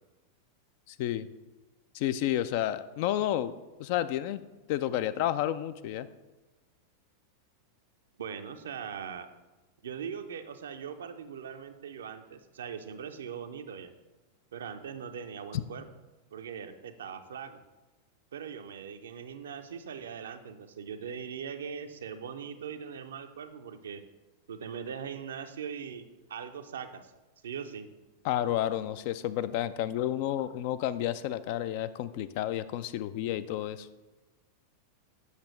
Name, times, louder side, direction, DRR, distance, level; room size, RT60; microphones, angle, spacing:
voice 1, 0.9-1.3 1.9-3.5 3.8-4.4 4.7-6.1 15.5-15.6 28.2-33.9, left 12 dB, 50° left, 13 dB, 0.3 m, -31 dB
voice 2, 8.2-9.3 9.8-13.9 14.5-15.9 16.3-17.6 18.3-24.0 24.5-27.1 27.4-27.9, right 7 dB, 65° right, 8 dB, 0.5 m, -40 dB
8.1 x 6.0 x 3.2 m, 1.1 s
figure-of-eight pair, 90°, 0 cm